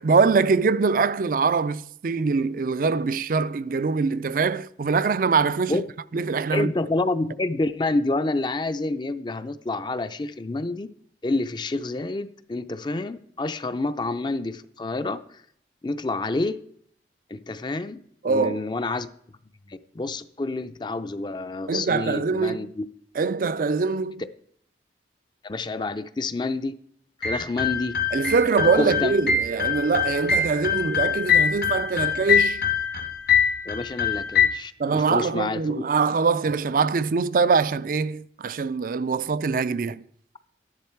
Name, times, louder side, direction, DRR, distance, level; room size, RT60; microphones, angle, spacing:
voice 1, 0.0-5.8 6.1-6.7 18.2-18.6 21.7-22.7 23.2-24.2 28.1-32.6 34.8-40.0, right 4 dB, 50° right, 0.4 m, -23 dB
voice 2, 6.5-10.9 11.2-15.2 15.8-16.6 17.3-19.1 19.7-22.9 25.4-26.7 27.2-27.9 28.7-29.3 33.7-35.8, left 2 dB, 25° left, 0.4 m, -28 dB
sound 1, 27.2-34.5, left 7 dB, 65° left, 1.5 m, -23 dB
12.5 x 10.5 x 4.5 m
head